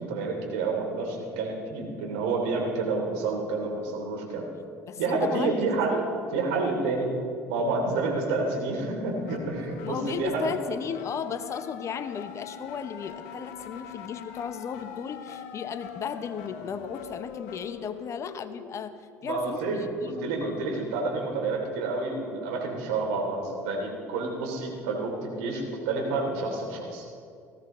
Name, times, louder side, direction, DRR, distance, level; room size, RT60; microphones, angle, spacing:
voice 1, 0.0-4.4 5.0-6.0 6.3-7.1 7.5-10.5 19.2-19.8 20.2-27.0, right 3 dB, 70° right, 0 dB, 3.0 m, -29 dB
voice 2, 4.9-5.7 9.8-20.8, left 7 dB, 45° left, 12 dB, 0.8 m, -35 dB
sound 1, 8.7-18.7, left 7 dB, 75° left, 0.9 m, -42 dB
18.5 x 15.5 x 3.1 m, 2.3 s
hypercardioid pair, 60°, 7 cm